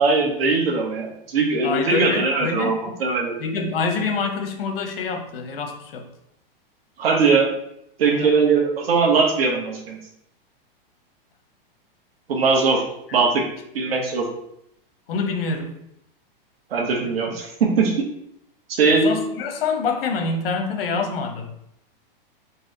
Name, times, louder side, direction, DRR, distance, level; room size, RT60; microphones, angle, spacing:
voice 1, 0.0-3.4 7.0-7.5 8.0-10.0 12.3-12.8 13.1-13.4 13.7-14.3 16.7-18.0 18.7-19.1, right 4 dB, 90° right, 1 dB, 1.2 m, -20 dB
voice 2, 1.6-2.8 3.4-6.1 8.0-8.3 13.9-14.0 15.1-15.7 18.8-21.5, left 4 dB, 75° left, 4 dB, 1.0 m, -26 dB
4.2 x 2.2 x 3.8 m, 0.78 s
hypercardioid pair, 145°, 29 cm